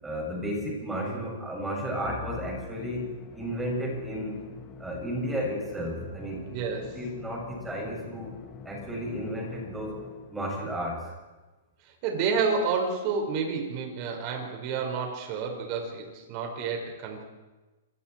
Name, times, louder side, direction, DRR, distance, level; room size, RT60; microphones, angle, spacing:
voice 1, 0.0-4.4 4.8-8.3 8.6-10.0 10.3-11.1, equal, 5° right, -1 dB, 6.8 m, -33 dB
Musical instrument, 2.0-10.6, left 6 dB, 20° left, 1.8 m, -45 dB
voice 2, 6.5-7.0 12.0-17.2, right 5 dB, 35° right, 2 dB, 5.2 m, -30 dB
27.5 x 23.0 x 4.6 m, 1.2 s
hypercardioid pair, 165°, 0 cm